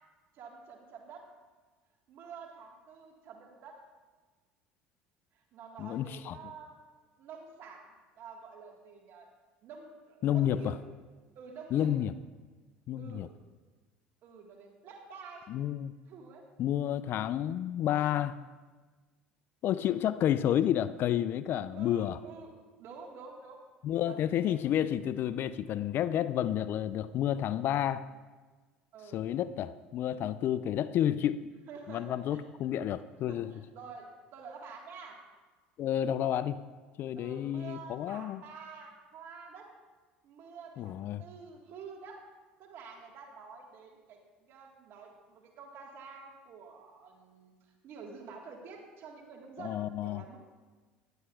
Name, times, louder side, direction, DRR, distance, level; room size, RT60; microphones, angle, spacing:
voice 1, 0.3-1.3 2.1-3.8 5.3-6.8 7.2-9.3 9.6-10.7 11.3-11.9 13.0-13.3 14.2-15.5 16.1-16.4 21.7-22.5 22.8-23.6 24.0-24.6 28.9-29.2 31.7-32.4 32.9-35.2 37.1-39.7 40.2-42.2 42.6-50.4, right 5 dB, 60° right, 1 dB, 1.6 m, -49 dB
voice 2, 5.8-6.4 10.2-10.7 11.7-12.1 12.9-13.3 15.5-15.9 16.6-18.3 19.6-22.2 23.8-28.0 29.1-31.4 31.9-33.5 35.8-36.6 37.0-38.4 40.8-41.2 49.6-50.2, left 11 dB, 55° left, 15 dB, 0.4 m, -30 dB
16.0 x 11.0 x 2.4 m, 1.3 s
hypercardioid pair, 75°, 5 cm